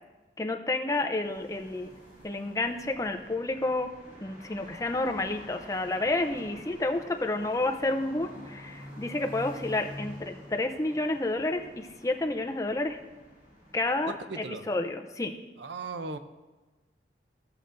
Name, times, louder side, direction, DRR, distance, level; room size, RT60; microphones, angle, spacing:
voice 1, 0.4-1.9 2.2-3.9 4.2-13.0 13.7-15.4, left 2 dB, 20° left, 5 dB, 0.5 m, -30 dB
sound 1, 1.1-14.4, equal, 25° right, 3.5 m, -48 dB
voice 2, 14.1-14.7 15.6-16.2, right 3 dB, 80° right, 9 dB, 0.6 m, -37 dB
17.5 x 6.7 x 2.6 m, 1.2 s
head